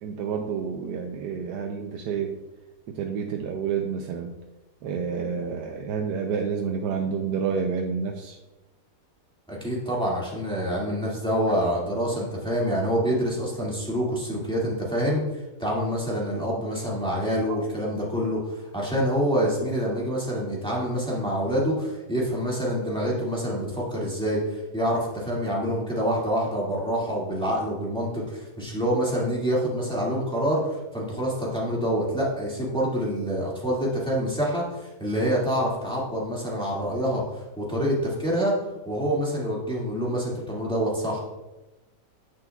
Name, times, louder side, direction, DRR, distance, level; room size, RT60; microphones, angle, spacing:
voice 1, 0.0-2.4 2.9-4.3 4.8-8.4 17.5-17.6, right 6 dB, 80° right, 3 dB, 1.2 m, -29 dB
voice 2, 9.5-38.5 38.9-41.2, equal, 5° left, -6 dB, 1.9 m, -26 dB
9.3 x 6.9 x 2.3 m, 1.0 s
omnidirectional pair, 1.8 m